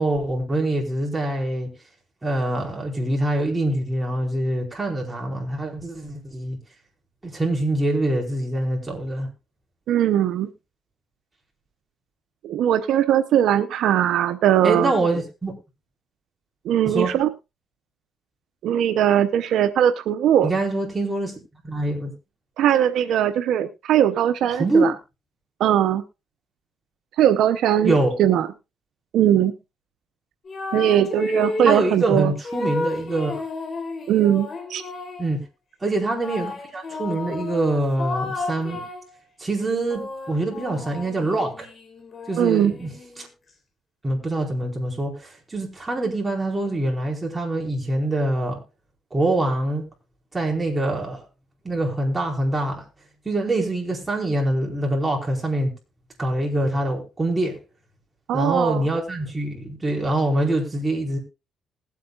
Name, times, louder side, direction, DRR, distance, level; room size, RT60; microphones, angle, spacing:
voice 1, 0.0-1.7 2.2-6.6 7.2-9.3 14.6-15.6 16.8-17.2 20.4-21.4 21.6-22.1 24.6-24.9 27.8-28.2 31.6-33.4 35.2-35.4 35.8-38.8 39.4-41.7 42.3-42.9 43.2-43.3 44.0-48.6 49.1-49.8 50.3-51.2 51.6-52.8 53.2-55.7 56.2-57.5 58.3-61.2, right 2 dB, 20° right, 4.8 m, -24 dB
voice 2, 9.9-10.5 12.4-14.9 16.6-17.3 18.6-20.5 22.6-24.9 25.6-26.0 27.2-28.5 29.1-29.5 30.7-32.3 34.1-34.9 42.4-42.8 58.3-58.9, right 10 dB, 80° right, 0.8 m, -20 dB
sound 1, 30.5-31.9 32.4-35.4 36.2-39.1 39.6-43.2, left 3 dB, 45° left, 3.4 m, -32 dB
20.5 x 8.4 x 2.4 m
cardioid pair, 90°, 0 cm